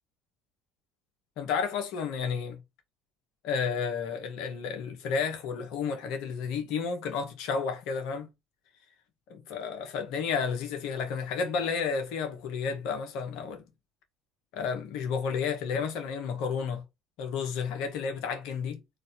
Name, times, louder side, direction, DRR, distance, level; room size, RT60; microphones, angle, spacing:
voice 1, 1.4-2.6 3.4-8.3 9.3-13.6 14.5-16.8 17.2-18.8, left 6 dB, 55° left, 1.0 m, -31 dB
3.8 x 2.6 x 4.2 m
figure-of-eight pair, 60°, 0 cm